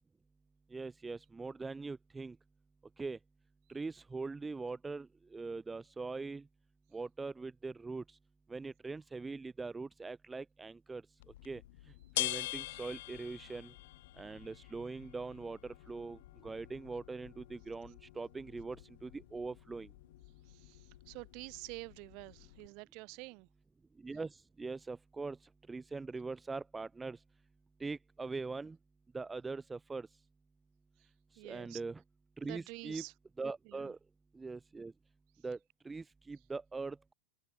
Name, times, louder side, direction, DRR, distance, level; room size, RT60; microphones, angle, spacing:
voice 1, 0.7-2.3 3.0-3.2 3.7-5.1 5.3-6.4 6.9-8.0 8.5-11.0 11.4-11.6 12.2-13.7 14.2-16.2 16.4-18.8 19.0-19.9 24.0-24.3 24.6-25.4 25.7-27.2 27.8-28.8 29.1-30.1 31.4-32.0 32.4-33.0 33.4-34.0 34.4-34.9 35.4-35.6 35.8-37.1, right 3 dB, 10° right, 0.9 m, -42 dB
sound 1, 11.2-22.7, left 18 dB, 50° left, 1.0 m, -45 dB
voice 2, 20.5-23.5 31.4-31.8 32.4-33.1 33.7-33.9, right 29 dB, 45° right, 2.0 m, -48 dB
figure-of-eight pair, 90°, 0 cm